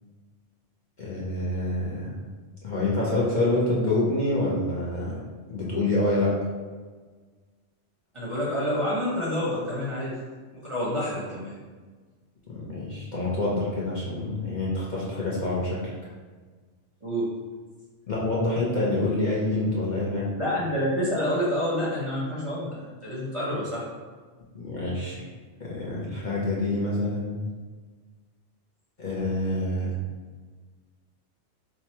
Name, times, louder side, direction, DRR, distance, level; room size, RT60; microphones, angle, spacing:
voice 1, 1.0-2.2 2.6-5.2 5.5-6.3 12.5-15.9 18.1-20.3 24.5-25.2 25.6-27.4 29.0-30.0, left 2 dB, 45° left, -7 dB, 0.7 m, -27 dB
voice 2, 8.1-10.2 10.5-11.5 17.0-17.3 20.4-23.9, equal, 30° right, -7 dB, 0.7 m, -28 dB
3.0 x 2.3 x 4.1 m, 1.4 s
omnidirectional pair, 1.2 m